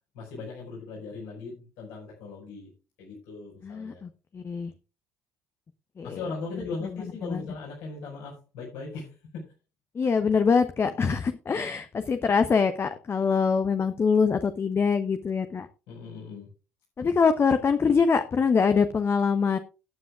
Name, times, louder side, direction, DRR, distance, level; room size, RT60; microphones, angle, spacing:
voice 1, 0.1-2.7 3.0-4.0 6.0-9.5 15.9-16.5, left 4 dB, 65° left, -5 dB, 5.3 m, -38 dB
voice 2, 3.6-4.7 6.0-6.2 7.2-7.4 9.9-15.7 17.0-19.6, left 5 dB, 35° left, 9 dB, 1.0 m, -24 dB
17.5 x 9.5 x 2.4 m, 0.32 s
figure-of-eight pair, 55°, 8 cm